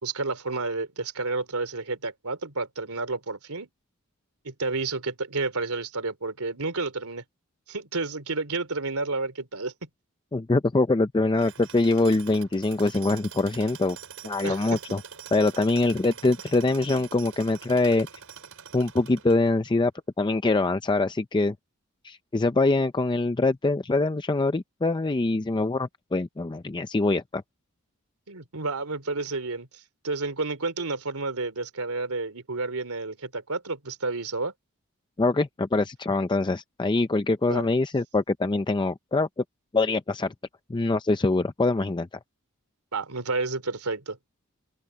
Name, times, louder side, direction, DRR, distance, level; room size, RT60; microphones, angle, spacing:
voice 1, 0.0-3.7 4.4-7.2 7.7-9.9 14.4-14.8 28.3-29.7 30.0-34.5 37.5-37.7 42.9-44.2, right 3 dB, 90° right, 3.1 m, -30 dB
voice 2, 10.3-14.0 14.2-15.0 15.3-18.1 18.7-19.9 20.2-21.5 22.0-27.4 35.2-39.3 39.7-40.3 40.7-42.1, left 2 dB, 20° left, 0.5 m, -24 dB
Tools, 11.4-19.7, right 7 dB, 70° right, 6.4 m, -44 dB
open air
head